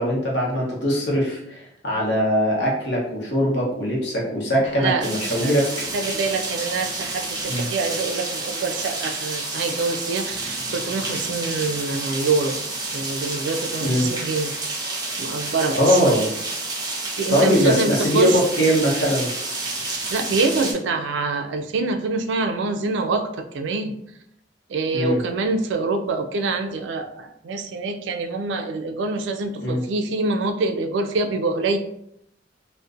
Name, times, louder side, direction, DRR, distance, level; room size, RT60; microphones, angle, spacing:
voice 1, 0.0-5.6 7.5-7.7 13.8-14.1 15.8-16.3 17.3-19.3 24.9-25.2 29.6-29.8, equal, 75° left, -3 dB, 0.8 m, -21 dB
voice 2, 4.7-5.1 5.4-5.6 5.9-12.6 12.9-14.5 15.2-16.1 17.2-18.4 20.1-23.9 24.7-31.8, right 3 dB, 90° right, 6 dB, 0.3 m, -25 dB
sound 1, 5.0-20.7, right 2 dB, 25° right, 0.5 m, -29 dB
2.5 x 2.1 x 2.4 m, 0.74 s
head